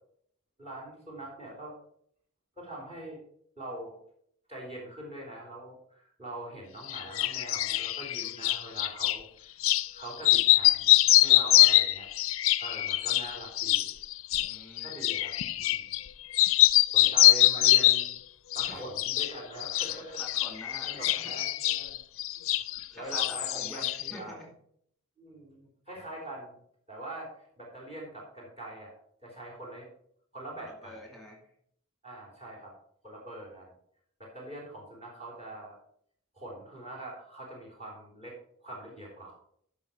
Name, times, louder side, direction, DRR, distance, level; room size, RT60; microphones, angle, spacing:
voice 1, 0.6-1.8 2.6-3.2 3.6-4.0 4.5-9.5 9.9-12.1 12.6-14.0 14.8-15.9 16.9-18.1 18.5-20.2 20.8-22.0 22.3-22.6 22.9-24.4 25.2-26.6 26.9-28.9 29.2-29.9 30.3-30.9 32.0-32.7 33.0-33.7 34.2-35.8 36.3-39.3, right 1 dB, 30° right, -2 dB, 3.3 m, -43 dB
sound 1, 6.9-9.2 9.6-9.9 10.2-16.1 16.3-18.2 18.5-19.3 19.6-22.9 23.1-24.1, left 16 dB, 70° left, 0.5 m, -24 dB
voice 2, 14.3-14.9 17.0-17.3 18.6-18.8 20.2-21.5 22.9-24.5 30.6-31.4, left 1 dB, ahead, -1 dB, 2.4 m, -47 dB
12.5 x 6.2 x 4.4 m, 0.66 s
head